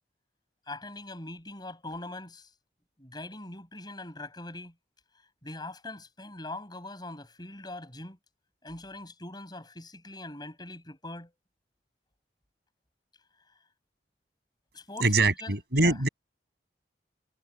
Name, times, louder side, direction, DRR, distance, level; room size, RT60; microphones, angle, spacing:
voice 1, 0.7-2.5 3.0-4.7 5.4-8.2 8.6-11.3 14.7-16.0, left 2 dB, 25° left, 7.1 m, -42 dB
voice 2, 15.0-16.1, right 2 dB, 65° right, 7.2 m, -23 dB
head